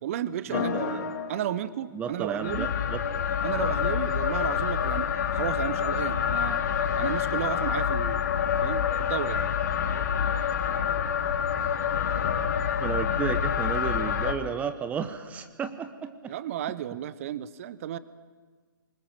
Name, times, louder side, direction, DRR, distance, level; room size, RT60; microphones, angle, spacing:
voice 1, 0.0-1.0 1.3-2.7 3.4-6.6 7.0-8.3 8.6-9.5 16.3-18.0, right 11 dB, 40° right, 17 dB, 0.8 m, -33 dB
sound 1, 0.5-1.6 2.4-14.3, left 8 dB, 50° left, 1.8 m, -27 dB
voice 2, 0.5-1.1 1.9-3.0 12.8-16.3, right 7 dB, 10° right, 10 dB, 0.9 m, -33 dB
23.5 x 20.5 x 7.5 m, 1.5 s
figure-of-eight pair, 135°, 12 cm